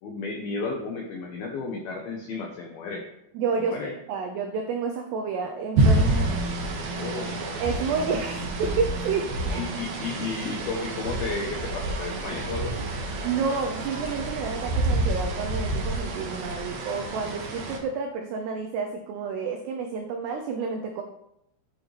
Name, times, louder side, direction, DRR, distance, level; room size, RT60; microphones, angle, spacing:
voice 1, 0.0-3.0 3.6-3.9 6.0-6.4 6.9-7.4 9.6-12.9, left 4 dB, 80° left, 2 dB, 2.2 m, -33 dB
voice 2, 3.3-6.1 7.6-9.6 13.2-21.0, right 5 dB, 90° right, 3 dB, 2.4 m, -30 dB
sound 1, 5.8-17.8, right 2 dB, 60° right, 2.7 m, -28 dB
12.5 x 8.7 x 3.4 m, 0.84 s
omnidirectional pair, 5.8 m